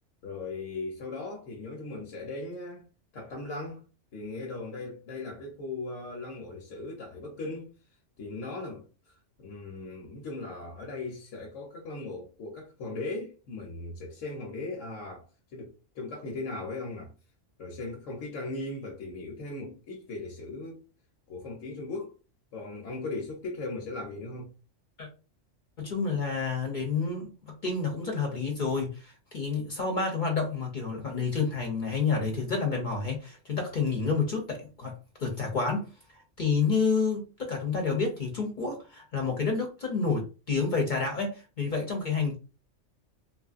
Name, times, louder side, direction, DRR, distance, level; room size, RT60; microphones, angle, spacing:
voice 1, 0.2-2.9 3.1-3.8 4.1-7.7 8.2-9.1 9.4-15.3 15.5-17.1 17.6-20.8 21.3-22.2 22.5-24.5, left 2 dB, 80° left, 1.1 m, -38 dB
voice 2, 25.8-34.9 35.2-35.9 36.1-42.4, left 4 dB, 50° left, 0.7 m, -29 dB
3.0 x 2.5 x 2.4 m
omnidirectional pair, 1.3 m